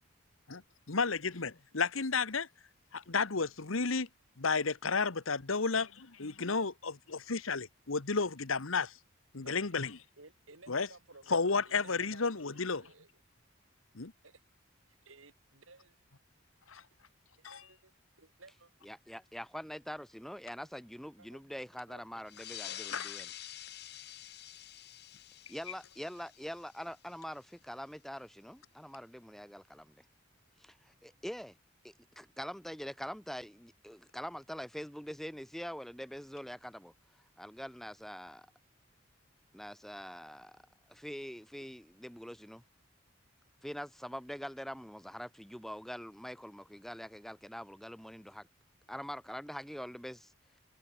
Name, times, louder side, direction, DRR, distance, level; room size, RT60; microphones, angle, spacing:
voice 1, 0.9-2.5 2.9-4.1 4.4-8.9 9.3-10.0 10.7-10.9 11.3-12.8 13.9-14.1 16.7-16.8 17.4-17.6 22.9-23.1, left 4 dB, 85° left, 1.3 m, -32 dB
voice 2, 10.2-11.4 11.7-13.1 14.2-14.4 15.0-16.0 17.4-17.9 18.2-18.7 21.2-21.5 21.9-22.2 22.9-23.0, right 3 dB, 85° right, 4.9 m, -57 dB
voice 3, 18.8-23.3 25.5-30.0 30.6-31.6 31.8-36.9 37.4-38.5 39.5-40.6 40.9-42.6 43.6-48.5 48.9-50.3, equal, ahead, 1.1 m, -44 dB
sound 1, 22.3-27.4, left 12 dB, 50° left, 1.5 m, -47 dB
head